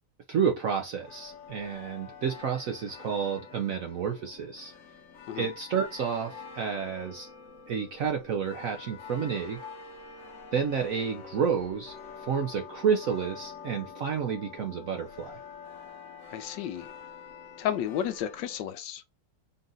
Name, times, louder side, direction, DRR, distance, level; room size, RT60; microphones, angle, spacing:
voice 1, 0.3-4.7 5.3-7.3 7.7-9.6 10.5-15.4, right 7 dB, 65° right, 0.8 m, -30 dB
sound 1, 1.0-18.6, left 5 dB, 50° left, 1.0 m, -47 dB
voice 2, 16.3-16.9 17.6-19.0, left 10 dB, 75° left, 1.2 m, -32 dB
4.0 x 2.4 x 3.8 m
omnidirectional pair, 2.1 m